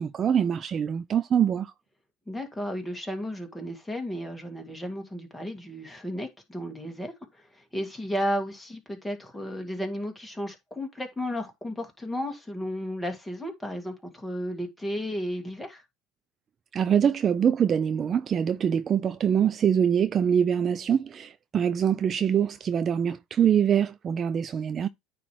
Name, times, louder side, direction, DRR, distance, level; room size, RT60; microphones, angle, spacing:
voice 1, 0.0-1.7 16.7-24.9, right 8 dB, 35° right, 0.4 m, -24 dB
voice 2, 2.3-15.8, equal, 5° left, 2.0 m, -33 dB
9.1 x 3.1 x 4.7 m
supercardioid pair, 115°, 0 cm